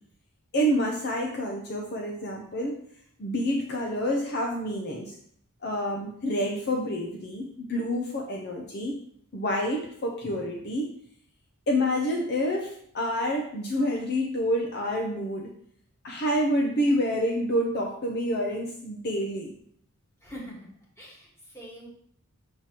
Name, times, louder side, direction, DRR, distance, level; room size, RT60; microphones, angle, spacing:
voice 1, 0.5-2.8 3.2-5.1 5.6-9.0 9.3-10.9 11.7-15.5 16.0-19.5, equal, 50° left, 1 dB, 0.7 m, -28 dB
voice 2, 20.2-20.7 21.0-21.9, equal, 10° left, -3 dB, 1.6 m, -43 dB
6.5 x 5.8 x 3.0 m, 0.64 s
head